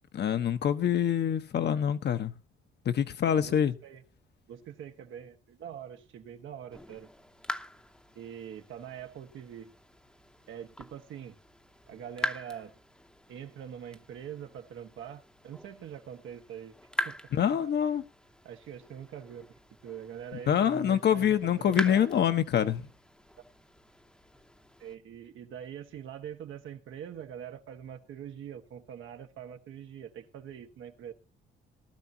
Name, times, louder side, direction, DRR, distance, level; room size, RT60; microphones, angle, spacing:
voice 1, 0.1-2.3 2.8-3.7 17.3-18.0 20.5-22.9, left 9 dB, 60° left, 1.1 m, -26 dB
voice 2, 4.5-7.1 8.1-9.7 10.5-11.3 11.9-12.7 13.3-16.7 17.0-17.2 18.4-22.1 24.8-31.1, right 9 dB, 80° right, 1.6 m, -44 dB
sound 1, 6.7-25.0, equal, 5° left, 0.9 m, -43 dB
18.0 x 12.0 x 2.8 m
cardioid pair, 90°, 20 cm